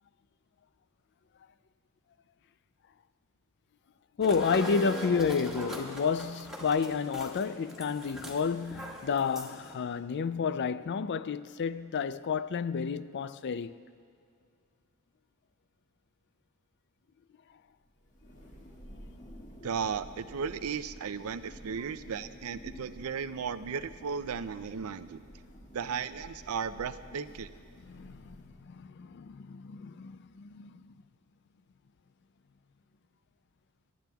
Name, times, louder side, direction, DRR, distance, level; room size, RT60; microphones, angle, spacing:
voice 1, 4.2-13.8 27.8-30.9, left 5 dB, 55° left, 0.4 m, -31 dB
sound 1, 4.2-9.7, equal, ahead, 1.8 m, -41 dB
Thunder, 17.9-28.9, equal, 35° left, 1.7 m, -50 dB
voice 2, 19.6-25.2 25.7-27.5, right 6 dB, 75° right, 0.5 m, -35 dB
27.5 x 12.0 x 2.3 m
head